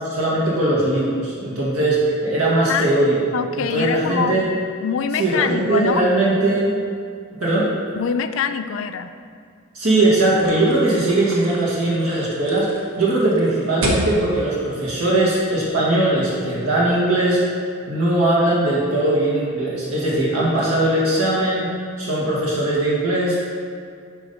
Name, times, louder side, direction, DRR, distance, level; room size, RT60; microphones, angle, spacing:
voice 1, 0.0-4.5 5.2-6.7 7.4-7.7 9.7-12.7 13.0-17.4 17.9-21.7 22.0-23.5, right 2 dB, 90° right, -6 dB, 1.6 m, -20 dB
voice 2, 3.3-4.4 4.8-6.1 7.9-9.1, left 6 dB, 60° left, 10 dB, 0.3 m, -24 dB
sound 1, 10.4-15.7, equal, 70° right, 1.2 m, -31 dB
9.2 x 3.1 x 5.4 m, 2.3 s
head